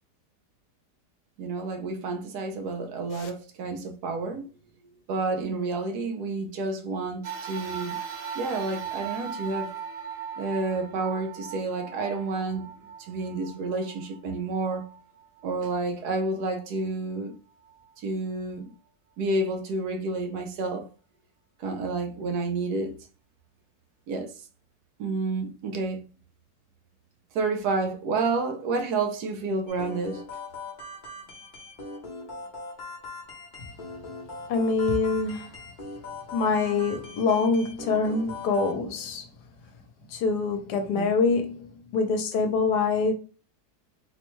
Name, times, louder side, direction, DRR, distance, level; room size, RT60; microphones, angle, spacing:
voice 1, 1.4-4.5 5.1-8.0 8.3-9.7 10.4-12.7 13.0-14.9 15.4-17.4 18.0-18.7 19.2-20.9 21.6-23.0 24.1-24.3 25.0-26.0 27.3-30.2 40.9-41.1, right 3 dB, 75° right, 1.1 m, -30 dB
sound 1, 7.2-15.8 16.5-16.6 17.7-17.8, right 7 dB, 45° right, 0.8 m, -39 dB
sound 2, 29.7-38.7, left 3 dB, 35° left, 0.8 m, -41 dB
voice 2, 34.5-35.5 36.3-39.3 40.1-41.7 41.9-43.1, left 4 dB, 75° left, 1.2 m, -25 dB
4.2 x 2.2 x 3.0 m
omnidirectional pair, 1.8 m